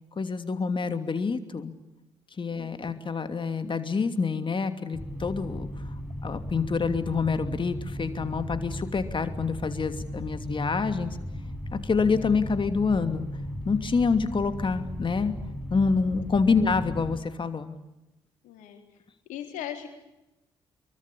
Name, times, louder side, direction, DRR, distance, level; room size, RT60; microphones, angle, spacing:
voice 1, 0.2-1.7 2.4-5.7 6.2-11.2 11.7-13.3 13.6-15.3 15.7-17.7, left 4 dB, 35° left, 9 dB, 2.8 m, -27 dB
voice 2, 2.5-3.0 18.4-18.8 19.3-19.9, left 10 dB, 65° left, 5 dB, 4.1 m, -39 dB
sound 1, 4.9-17.2, equal, 5° right, 7.2 m, -36 dB
26.0 x 23.5 x 8.7 m, 0.96 s
figure-of-eight pair, 40°, 14 cm